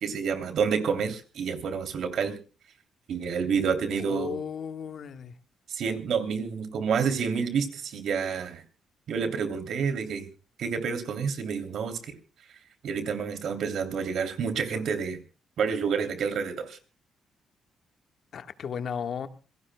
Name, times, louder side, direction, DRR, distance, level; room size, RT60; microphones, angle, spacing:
voice 1, 0.0-2.4 3.1-4.4 5.7-8.6 9.1-10.3 10.6-12.1 12.8-15.2 15.6-16.8, right 6 dB, 70° right, 8 dB, 2.9 m, -29 dB
voice 2, 4.0-5.3 18.3-19.3, left 7 dB, 60° left, 8 dB, 1.4 m, -34 dB
27.0 x 17.0 x 2.2 m, 0.33 s
cardioid pair, 90°, 0 cm